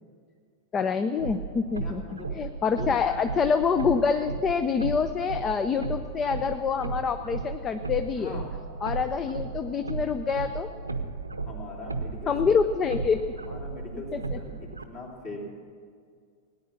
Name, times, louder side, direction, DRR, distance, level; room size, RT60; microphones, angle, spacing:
voice 1, 0.7-2.0 2.3-8.4 8.8-10.7 12.3-13.2 14.1-14.4, left 6 dB, 25° left, 9 dB, 0.5 m, -26 dB
sound 1, 1.2-14.8, right 4 dB, 80° right, 0.7 m, -35 dB
voice 2, 1.8-2.4 2.7-3.3 8.2-8.5 11.4-12.3 13.5-15.4, left 2 dB, 40° left, -1 dB, 3.2 m, -41 dB
18.0 x 9.6 x 7.1 m, 2.2 s
figure-of-eight pair, 90°, 0 cm